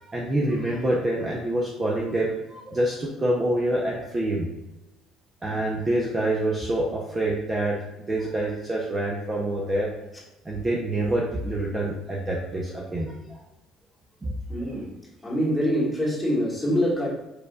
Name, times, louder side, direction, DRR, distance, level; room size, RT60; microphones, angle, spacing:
voice 1, 0.0-4.5 5.4-7.8 8.1-9.9 10.4-13.4 14.2-14.7, right 1 dB, 20° right, -3 dB, 0.6 m, -26 dB
voice 2, 14.5-14.9 15.2-17.1, equal, 10° left, -6 dB, 1.6 m, -25 dB
4.8 x 4.7 x 2.3 m, 0.97 s
cardioid pair, 150°, 0 cm